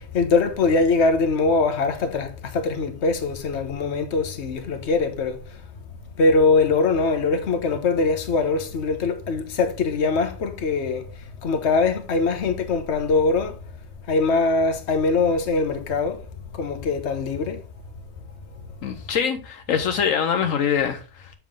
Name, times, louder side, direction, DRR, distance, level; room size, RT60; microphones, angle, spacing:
voice 1, 0.0-5.6 6.2-13.6 14.1-16.2 16.5-17.6, left 3 dB, 60° left, 1.3 m, -22 dB
voice 2, 18.8-21.3, left 7 dB, 80° left, 1.2 m, -24 dB
7.3 x 5.8 x 3.6 m
omnidirectional pair, 1.4 m